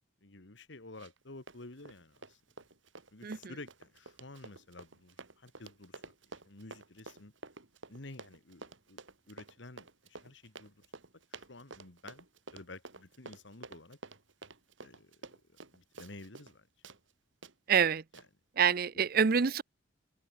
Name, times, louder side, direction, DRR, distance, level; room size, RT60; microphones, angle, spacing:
voice 1, 0.2-2.4 3.1-6.1 6.4-7.3 7.9-9.0 9.3-10.8 11.3-12.3 12.5-14.0 14.8-16.7 19.3-19.4, left 2 dB, 70° left, 1.9 m, -51 dB
Run, 1.0-1.2 1.5-16.6 16.8-17.0 17.4-17.5 18.1-18.3, right 3 dB, 80° right, 2.4 m, -50 dB
voice 2, 17.7-18.0 18.6-19.6, right 7 dB, 50° right, 0.6 m, -26 dB
head